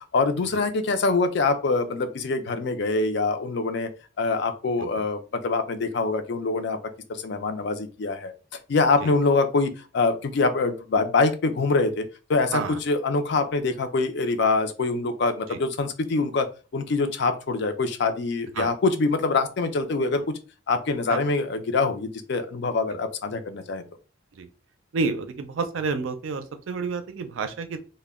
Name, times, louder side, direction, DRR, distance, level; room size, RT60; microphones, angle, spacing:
voice 1, 0.1-3.9 4.2-6.8 7.1-8.3 8.7-16.5 16.7-20.4 20.7-23.8, left 3 dB, 60° left, 7 dB, 0.4 m, -24 dB
voice 2, 24.9-27.8, right 4 dB, 90° right, 8 dB, 0.4 m, -29 dB
2.1 x 2.1 x 3.4 m, 0.33 s
head